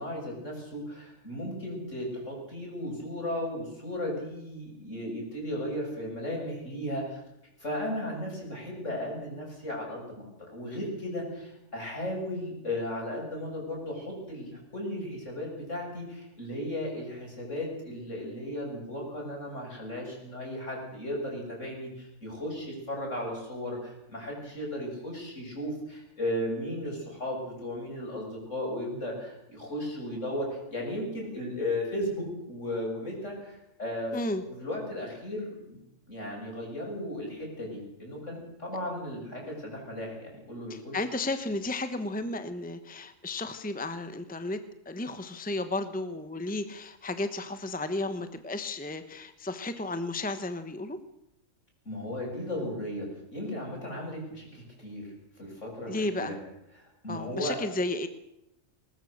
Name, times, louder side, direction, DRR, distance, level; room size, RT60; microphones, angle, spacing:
voice 1, 0.0-7.2 7.6-34.2 34.5-35.8 36.1-41.0 51.8-55.1 55.4-56.4 56.8-57.6, left 1 dB, 65° left, -1 dB, 7.8 m, -35 dB
voice 2, 40.7-44.6 44.8-51.0 55.9-56.3 57.1-58.1, left 2 dB, 5° left, 10 dB, 1.1 m, -33 dB
20.0 x 20.0 x 6.6 m, 0.87 s
omnidirectional pair, 1.3 m